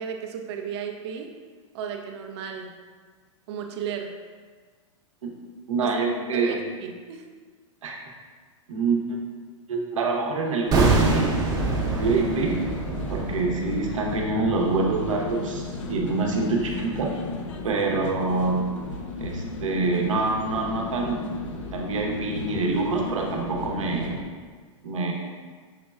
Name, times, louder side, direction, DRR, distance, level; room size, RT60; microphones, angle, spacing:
voice 1, 0.0-1.3 1.7-2.8 3.5-4.1 5.8-5.9 6.3-7.3, right 7 dB, 55° right, 4 dB, 0.6 m, -34 dB
voice 2, 5.7-6.6 7.8-8.0 8.7-9.2 9.7-11.3 11.9-12.6 13.1-17.2 17.6-18.8 19.2-21.4 21.7-24.2 24.8-25.1, right 3 dB, 80° right, 0 dB, 0.8 m, -26 dB
sound 1, 10.6-24.2, left 3 dB, 70° left, 0.6 m, -34 dB
sound 2, 10.7-15.7 16.0-16.1, right 3 dB, 25° right, 0.7 m, -26 dB
6.4 x 3.0 x 2.3 m, 1.6 s
hypercardioid pair, 115°, 16 cm